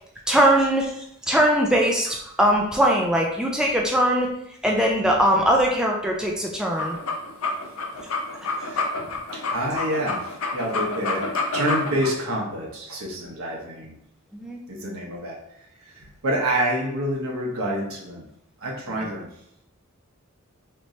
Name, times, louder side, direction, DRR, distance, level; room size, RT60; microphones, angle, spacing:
voice 1, 0.3-0.9 1.3-4.3 4.6-7.0 14.3-14.6, right 1 dB, 5° right, -1 dB, 0.4 m, -20 dB
sound 1, 6.6-12.1, left 4 dB, 70° left, 0.6 m, -28 dB
voice 2, 9.3-11.2 11.5-14.0 14.7-15.4 15.9-18.3 18.6-19.3, right 1 dB, 70° right, -2 dB, 1.1 m, -27 dB
4.4 x 3.1 x 2.7 m, 0.76 s
head